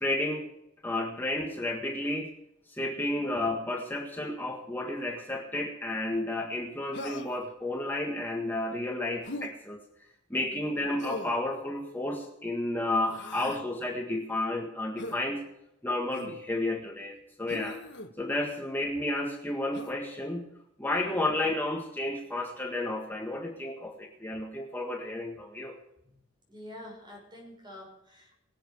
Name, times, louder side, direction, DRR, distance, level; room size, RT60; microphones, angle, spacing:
voice 1, 0.0-0.5 0.8-2.3 2.7-9.8 10.3-15.4 15.8-17.8 18.2-20.5 20.8-25.7, left 1 dB, 10° left, 0 dB, 1.7 m, -32 dB
Human voice, 6.9-7.5 9.2-9.5 11.0-11.4 13.0-13.6 15.0-15.2 16.1-16.4 17.5-18.1 19.7-20.0, left 2 dB, 65° left, 1.5 m, -40 dB
voice 2, 26.5-28.3, left 1 dB, 25° right, 0 dB, 5.8 m, -48 dB
23.0 x 8.0 x 4.7 m, 0.84 s
head